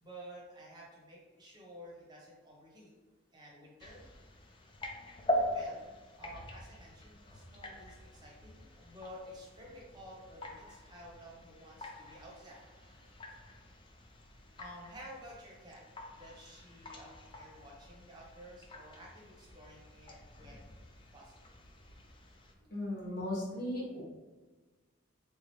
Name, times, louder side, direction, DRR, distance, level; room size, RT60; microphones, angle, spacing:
voice 1, 0.0-2.9 3.3-4.0 4.8-13.5 14.6-20.7 21.1-21.4, equal, 20° right, -4 dB, 0.9 m, -52 dB
sound 1, 3.8-22.5, equal, 25° left, 0.3 m, -43 dB
voice 2, 22.7-24.0, left 1 dB, 50° left, -5 dB, 1.2 m, -36 dB
3.5 x 3.0 x 3.0 m, 1.2 s
head